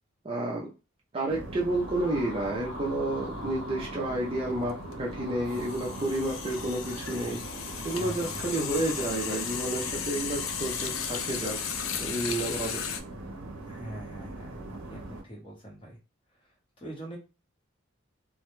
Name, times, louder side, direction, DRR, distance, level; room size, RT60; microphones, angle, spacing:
voice 1, 0.2-0.7 1.1-7.4 7.8-11.6 11.9-12.8, right 1 dB, 25° right, -2 dB, 0.4 m, -30 dB
sound 1, 1.3-15.2, right 2 dB, 80° right, 0.5 m, -41 dB
sound 2, 1.4-12.3, left 1 dB, 85° left, 0.8 m, -45 dB
sound 3, 4.2-4.4 4.7-13.0, left 8 dB, 70° left, 0.3 m, -35 dB
voice 2, 8.0-8.5 13.7-16.0 16.8-17.2, right 1 dB, 25° left, -3 dB, 0.8 m, -43 dB
2.2 x 2.0 x 3.0 m, 0.30 s
head